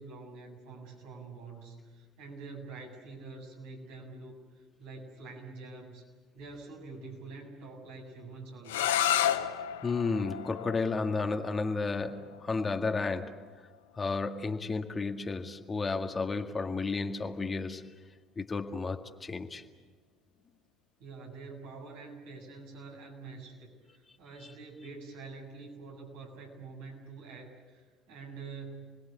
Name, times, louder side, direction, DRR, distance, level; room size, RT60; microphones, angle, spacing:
voice 1, 0.0-6.0 6.3-8.9 21.0-28.9, right 3 dB, 75° right, -1 dB, 7.5 m, -46 dB
sound 1, 8.6-14.4, left 10 dB, 85° left, 1.0 m, -33 dB
voice 2, 9.8-13.4 14.0-18.0 18.4-19.6, left 4 dB, 30° left, 5 dB, 2.0 m, -32 dB
30.0 x 21.0 x 8.4 m, 1.4 s
hypercardioid pair, 60°, 0 cm